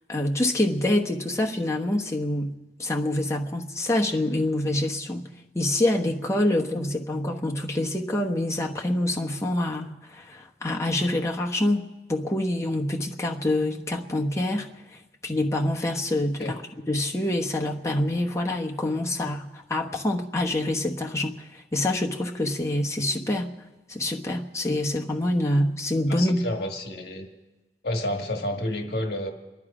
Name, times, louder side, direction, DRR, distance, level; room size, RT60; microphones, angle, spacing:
voice 1, 0.1-2.5 2.8-5.3 5.5-14.7 15.2-16.6 16.9-23.5 23.9-26.4, left 1 dB, 15° left, 0 dB, 1.0 m, -26 dB
voice 2, 26.1-27.3 27.8-29.3, left 1 dB, 60° left, 3 dB, 1.5 m, -30 dB
27.0 x 10.5 x 4.9 m, 1.1 s
head